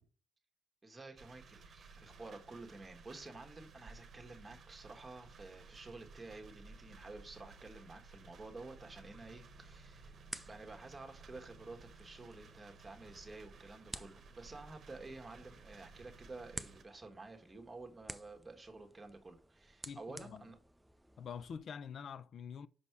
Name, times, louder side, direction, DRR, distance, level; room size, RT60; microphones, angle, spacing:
voice 1, 0.8-10.2 10.5-20.6, right 3 dB, 20° right, 1.4 m, -51 dB
sound 1, 1.2-16.8, right 4 dB, 55° right, 1.0 m, -57 dB
sound 2, 9.4-21.6, right 1 dB, 5° right, 0.5 m, -54 dB
voice 2, 19.9-20.4 21.2-22.7, left 7 dB, 60° left, 0.4 m, -46 dB
5.6 x 5.2 x 4.6 m
cardioid pair, 90°, 0 cm